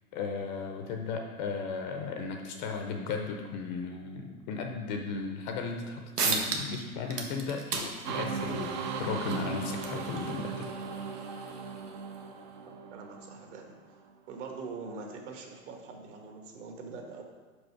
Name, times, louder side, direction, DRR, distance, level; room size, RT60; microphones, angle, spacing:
voice 1, 0.1-10.7, left 4 dB, 30° left, 4 dB, 0.6 m, -35 dB
sound 1, 5.8-5.9 6.2-6.8 7.1-12.2, right 4 dB, 90° right, 1.2 m, -36 dB
sound 2, 8.0-13.8, right 5 dB, 35° right, 0.5 m, -37 dB
voice 2, 12.7-13.7 14.3-17.2, right 4 dB, 50° right, 2 dB, 1.4 m, -43 dB
5.6 x 5.3 x 4.5 m, 1.4 s
hypercardioid pair, 125°, 45 cm